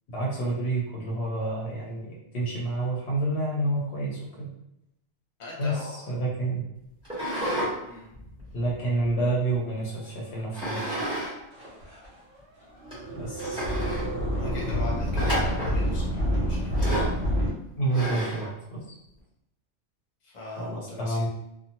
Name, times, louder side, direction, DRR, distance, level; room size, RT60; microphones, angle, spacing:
voice 1, 0.1-4.5 5.6-6.7 8.5-11.1 13.1-13.7 17.8-19.0 20.6-21.3, right 2 dB, 70° left, -4 dB, 0.9 m, -29 dB
voice 2, 5.4-6.1 7.9-8.1 14.4-17.1 20.2-21.3, left 1 dB, 40° left, -4 dB, 0.9 m, -41 dB
sound 1, 7.0-7.7 8.1-9.5 10.5-11.3 11.6-11.7 12.4-12.5 12.9-13.0 13.4-14.1 15.1-15.8 16.7-17.2 17.9-18.5, right 1 dB, 5° right, 1.0 m, -31 dB
sound 2, 10.4-10.5 11.2-11.3 11.5-12.1 12.7-17.5, equal, 65° right, 1.2 m, -28 dB
2.7 x 2.3 x 2.8 m, 0.84 s
omnidirectional pair, 1.2 m